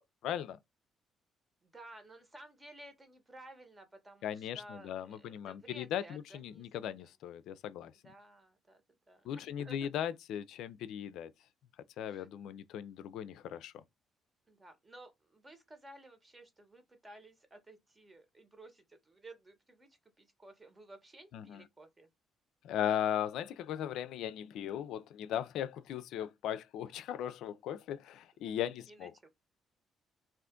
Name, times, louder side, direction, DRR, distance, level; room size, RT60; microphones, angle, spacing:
voice 1, 0.2-0.6 4.2-7.9 9.2-11.3 12.0-13.8 21.3-21.6 22.6-29.1, left 10 dB, 75° left, 0.3 m, -38 dB
voice 2, 1.6-7.1 8.0-8.8 9.1-9.9 11.9-12.3 14.5-22.1 28.9-29.3, right 1 dB, 25° right, 1.0 m, -55 dB
2.4 x 2.4 x 3.6 m
supercardioid pair, 70°, 0 cm